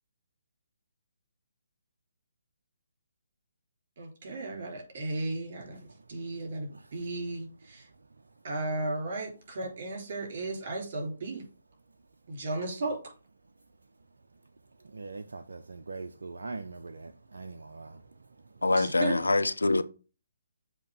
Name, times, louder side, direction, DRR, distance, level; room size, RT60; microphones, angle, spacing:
voice 1, 4.0-5.8 6.1-7.9 8.4-11.4 12.3-13.0 18.7-19.2, right 2 dB, 50° right, 3.6 m, -35 dB
voice 2, 14.9-17.9, right 3 dB, 70° right, 0.5 m, -41 dB
voice 3, 18.6-19.8, left 2 dB, 85° left, 0.6 m, -25 dB
7.5 x 2.9 x 5.2 m
figure-of-eight pair, 145°, 0 cm